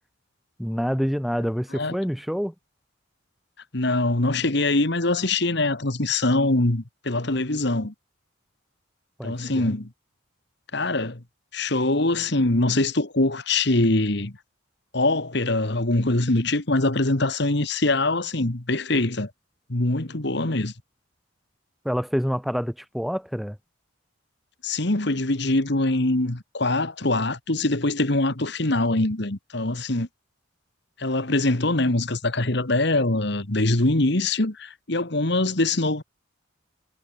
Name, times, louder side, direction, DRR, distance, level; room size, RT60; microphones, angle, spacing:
voice 1, 0.6-2.5 9.2-9.7 21.8-23.6, equal, ahead, 1.1 m, -27 dB
voice 2, 3.7-7.9 9.2-9.9 10.7-11.2 11.5-14.3 14.9-19.3 19.7-20.7 24.6-30.1 31.0-36.0, left 2 dB, 55° left, 1.9 m, -23 dB
head